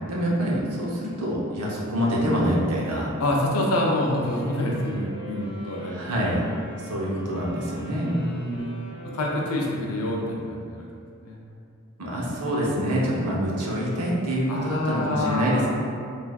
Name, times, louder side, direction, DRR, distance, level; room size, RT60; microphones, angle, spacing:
voice 1, 0.1-3.1 5.9-6.4 6.8-8.1 12.0-15.7, equal, 85° right, -4 dB, 0.6 m, -26 dB
voice 2, 3.2-6.1 8.0-8.7 9.0-10.9 11.2-11.4 14.5-15.7, left 1 dB, 75° left, -2 dB, 0.5 m, -27 dB
sound 1, 4.2-10.7, right 1 dB, 20° left, 0.4 m, -44 dB
3.4 x 2.5 x 2.3 m, 2.4 s
head